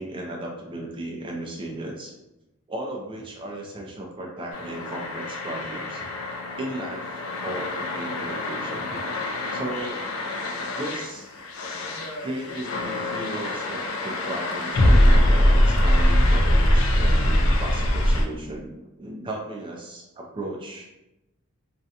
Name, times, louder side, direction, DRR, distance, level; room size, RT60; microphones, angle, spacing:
voice 1, 0.0-2.1 2.7-6.1 6.6-9.0 9.5-11.3 12.2-20.9, right 1 dB, 25° right, 0 dB, 0.3 m, -35 dB
sound 1, 4.5-18.2, left 1 dB, 65° left, 0.4 m, -23 dB
2.4 x 2.1 x 2.7 m, 0.95 s
head